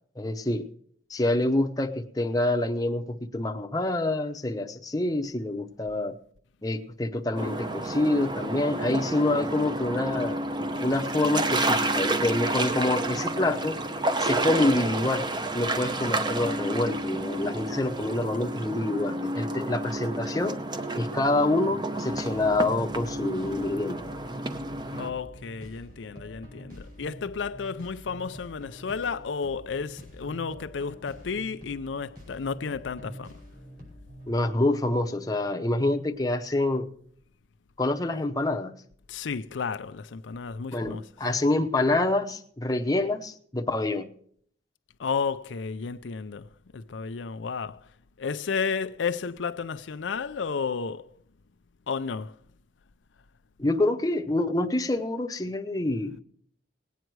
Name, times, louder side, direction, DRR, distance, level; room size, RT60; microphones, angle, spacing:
voice 1, 0.2-0.7 1.1-3.0 3.3-6.2 6.6-10.4 10.8-13.8 14.2-15.2 15.5-20.6 20.9-24.0 34.3-36.9 37.8-38.7 40.7-44.1 53.6-56.2, left 2 dB, 20° left, 0.7 m, -26 dB
sound 1, 7.3-25.1, right 2 dB, 25° right, 0.7 m, -30 dB
sound 2, 22.1-34.3, equal, 50° right, 5.5 m, -46 dB
voice 2, 24.9-33.3 39.1-41.0 45.0-46.5 46.7-47.8 48.2-51.1 51.9-52.3, left 5 dB, 85° left, 0.5 m, -32 dB
19.0 x 9.2 x 4.7 m
head